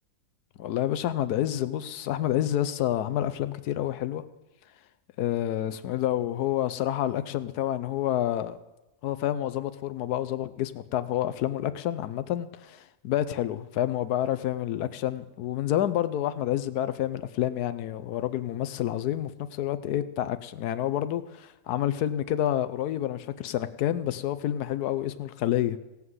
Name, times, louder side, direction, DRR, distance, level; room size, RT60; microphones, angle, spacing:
voice 1, 0.6-4.2 5.2-8.6 9.0-25.8, left 12 dB, 80° left, 13 dB, 1.2 m, -28 dB
17.0 x 5.9 x 7.9 m, 1.0 s
omnidirectional pair, 1.6 m